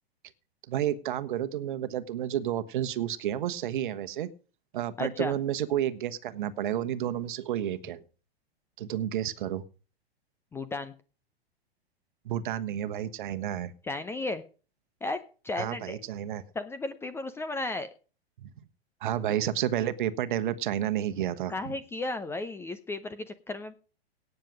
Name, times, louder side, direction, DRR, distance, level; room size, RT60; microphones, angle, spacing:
voice 1, 0.7-4.3 4.7-8.0 8.8-9.6 12.2-13.7 15.6-16.4 18.4-18.5 19.0-21.8, right 11 dB, 50° right, 12 dB, 1.2 m, -31 dB
voice 2, 5.0-5.4 10.5-10.9 13.8-14.4 15.0-16.0 16.5-17.9 21.5-23.7, left 2 dB, 10° left, 12 dB, 0.6 m, -34 dB
18.0 x 6.9 x 5.0 m, 0.36 s
figure-of-eight pair, 105°, 32 cm